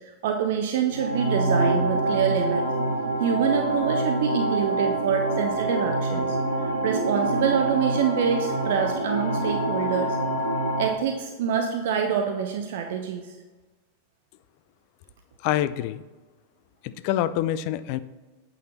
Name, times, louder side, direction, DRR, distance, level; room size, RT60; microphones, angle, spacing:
voice 1, 0.0-2.7 3.2-10.2 10.8-13.4, right 7 dB, 55° right, 4 dB, 0.5 m, -26 dB
sound 1, 0.9-10.9, right 2 dB, 85° right, 1.2 m, -25 dB
voice 2, 15.4-16.0 16.8-18.0, left 12 dB, 45° left, 14 dB, 0.3 m, -26 dB
8.3 x 4.0 x 4.3 m, 1.3 s
figure-of-eight pair, 90°, 0 cm